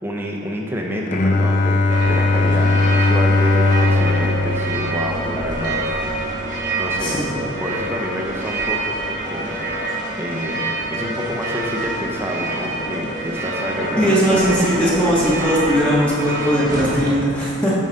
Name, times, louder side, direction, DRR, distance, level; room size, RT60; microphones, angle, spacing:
voice 1, 0.0-5.9 6.3-6.4 6.8-7.2 7.6-14.7, equal, 10° right, -1 dB, 0.7 m, -29 dB
Bowed string instrument, 1.1-6.8, left 3 dB, 35° left, 0.4 m, -19 dB
sound 1, 1.9-17.1, right 2 dB, 35° right, 1.0 m, -26 dB
voice 2, 7.0-7.4 14.0-17.7, equal, 5° left, -8 dB, 1.1 m, -19 dB
9.1 x 4.0 x 5.2 m, 2.6 s
head